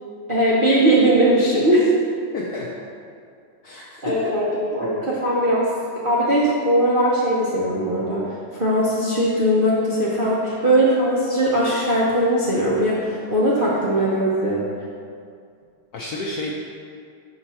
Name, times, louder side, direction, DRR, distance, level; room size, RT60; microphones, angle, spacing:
voice 1, 0.3-1.9 4.0-5.7 6.0-14.6, right 1 dB, 55° right, -8 dB, 0.5 m, -20 dB
voice 2, 2.3-2.7 3.6-4.3 13.8-13.9 15.9-16.5, left 2 dB, 75° left, -3 dB, 0.9 m, -31 dB
5.9 x 5.4 x 4.2 m, 2.3 s
omnidirectional pair, 2.2 m